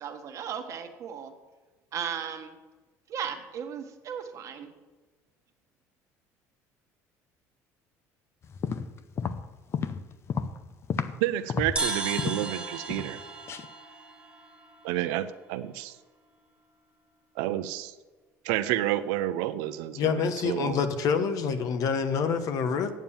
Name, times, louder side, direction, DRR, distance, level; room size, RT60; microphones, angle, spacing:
voice 1, 0.0-1.3 1.9-2.5 3.1-4.7, right 8 dB, 50° right, 6 dB, 1.4 m, -36 dB
sound 1, 8.4-11.2 11.5-12.5 12.9-13.2 13.5-13.7, left 6 dB, 40° left, 0.6 m, -32 dB
voice 2, 11.2-13.2 14.8-15.9 17.4-17.9 18.4-20.8, right 13 dB, 85° right, 11 dB, 0.6 m, -30 dB
sound 2, 11.8-15.3, right 3 dB, 15° right, 1.7 m, -35 dB
voice 3, 19.9-22.9, left 6 dB, 60° left, 8 dB, 1.2 m, -27 dB
9.2 x 7.3 x 7.0 m, 1.3 s
cardioid pair, 110°, 7 cm